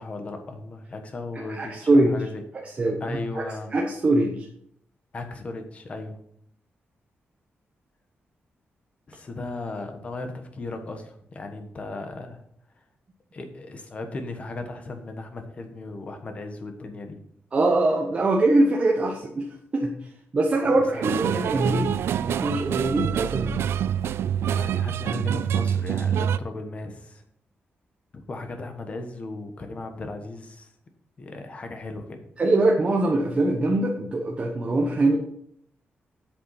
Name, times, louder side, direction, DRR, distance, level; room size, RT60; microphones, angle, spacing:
voice 1, 0.0-2.4 3.0-3.7 5.1-6.2 9.1-12.4 13.3-17.2 20.6-21.0 24.4-27.2 28.1-30.7 31.2-32.2, left 2 dB, 30° left, 6 dB, 1.3 m, -36 dB
voice 2, 1.5-2.1 2.8-3.4 3.7-4.5 17.5-19.4 19.7-19.9 20.3-23.6 32.4-35.2, right 2 dB, 30° right, -1 dB, 1.1 m, -22 dB
sound 1, 21.0-26.4, right 9 dB, 80° right, 0.3 m, -26 dB
8.2 x 6.9 x 5.7 m, 0.68 s
wide cardioid pair, 175°, 4 cm